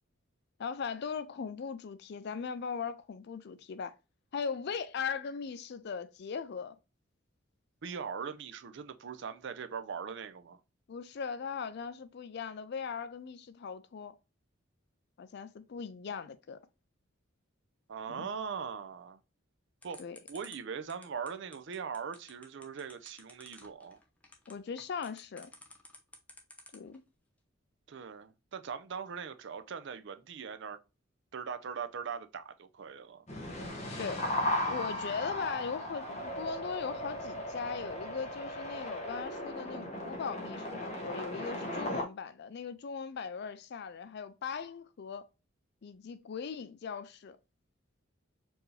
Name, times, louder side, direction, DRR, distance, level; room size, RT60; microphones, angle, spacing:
voice 1, 0.6-3.9 4.3-6.8 10.9-14.2 15.2-16.6 18.1-18.3 20.0-20.2 24.5-25.5 26.7-27.0 34.0-34.3 34.7-45.2 45.8-47.4, left 6 dB, 55° left, 0.4 m, -39 dB
voice 2, 7.8-10.6 17.9-19.2 19.8-20.0 20.3-24.0 27.9-30.8 31.3-33.2, right 6 dB, 65° right, 0.5 m, -40 dB
sound 1, 19.8-27.0, left 1 dB, 5° left, 0.6 m, -52 dB
sound 2, 33.3-42.0, left 1 dB, 35° left, 1.0 m, -37 dB
4.5 x 2.8 x 3.1 m
head